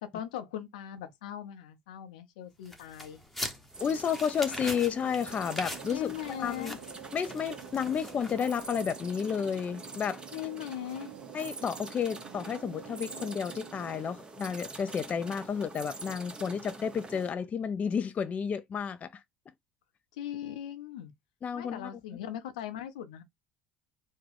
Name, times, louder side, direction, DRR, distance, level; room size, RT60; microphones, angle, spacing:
voice 1, 0.0-3.2 5.9-6.8 10.3-11.1 20.1-21.1 21.5-23.2, left 11 dB, 85° left, 0.6 m, -39 dB
sound 1, 2.6-8.9, equal, ahead, 1.1 m, -42 dB
sound 2, 3.7-17.3, right 3 dB, 20° right, 0.9 m, -46 dB
voice 2, 3.8-6.8 7.1-10.2 11.3-19.2 21.4-21.9, left 7 dB, 35° left, 0.4 m, -31 dB
sound 3, 4.4-14.2, right 13 dB, 90° right, 0.4 m, -49 dB
3.6 x 2.2 x 3.3 m
supercardioid pair, 80°, 4 cm